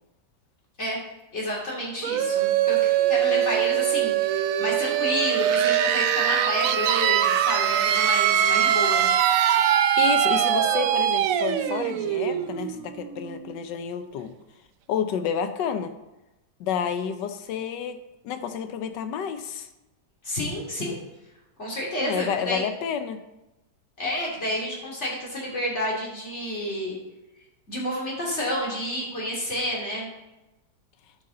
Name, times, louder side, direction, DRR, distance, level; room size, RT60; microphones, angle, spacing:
voice 1, 1.3-9.1 20.2-21.0 21.6-22.6 24.0-26.9 27.7-30.1, equal, 40° left, -4 dB, 3.0 m, -30 dB
sound 1, 2.0-13.6, right 10 dB, 70° right, 0.8 m, -22 dB
voice 2, 10.0-14.3 14.9-15.9 16.6-18.0 18.2-19.7 22.0-23.2, left 8 dB, 90° left, 9 dB, 1.4 m, -30 dB
12.5 x 5.7 x 3.8 m, 1.0 s
omnidirectional pair, 1.8 m